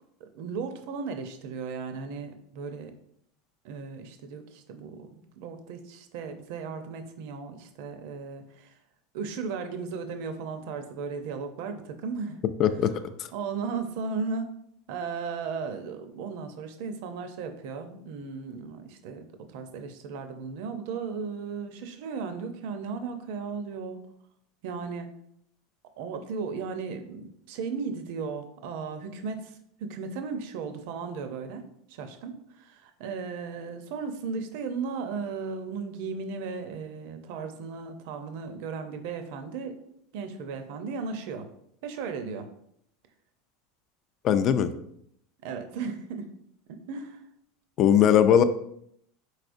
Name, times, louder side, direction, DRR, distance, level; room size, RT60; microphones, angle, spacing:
voice 1, 0.2-2.9 3.6-8.7 9.1-12.4 13.3-14.5 14.9-19.3 19.5-24.0 24.6-25.1 26.0-39.8 40.1-41.5 41.8-42.5 45.4-46.3 46.7-47.2, right 5 dB, 60° right, 7 dB, 0.6 m, -36 dB
voice 2, 12.6-12.9 44.2-44.7 47.8-48.4, left 9 dB, 35° left, 11 dB, 0.3 m, -19 dB
4.8 x 4.1 x 2.6 m, 0.71 s
supercardioid pair, 155°, 0 cm